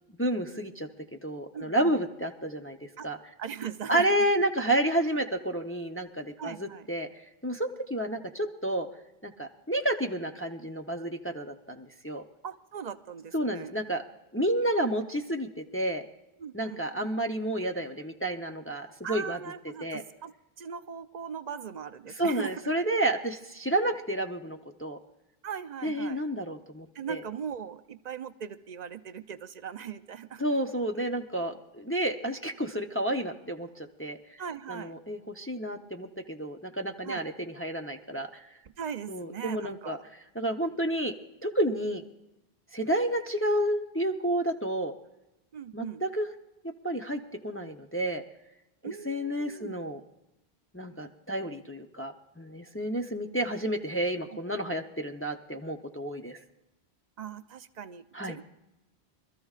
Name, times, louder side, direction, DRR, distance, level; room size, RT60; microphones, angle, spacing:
voice 1, 0.2-0.9 1.2-3.2 3.9-7.1 7.4-8.9 9.2-12.2 13.3-14.0 14.3-16.1 16.5-19.4 19.8-20.0 22.2-25.0 25.8-27.2 30.4-34.4 34.7-38.5 39.1-40.0 40.3-41.1 41.4-42.0 42.7-44.9 45.7-46.3 46.8-48.2 48.8-50.0 50.7-56.4 58.1-58.4, right 1 dB, 15° left, 3 dB, 0.7 m, -30 dB
voice 2, 1.5-1.9 3.0-3.1 3.4-4.0 6.4-6.9 12.4-13.7 16.4-16.8 19.0-20.3 20.6-22.6 25.4-26.2 26.9-30.4 34.4-34.9 37.0-37.2 38.8-40.0 45.5-46.0 48.8-49.8 57.2-58.4, right 7 dB, 50° right, 11 dB, 0.6 m, -39 dB
25.5 x 13.5 x 2.4 m, 0.92 s
omnidirectional pair, 1.1 m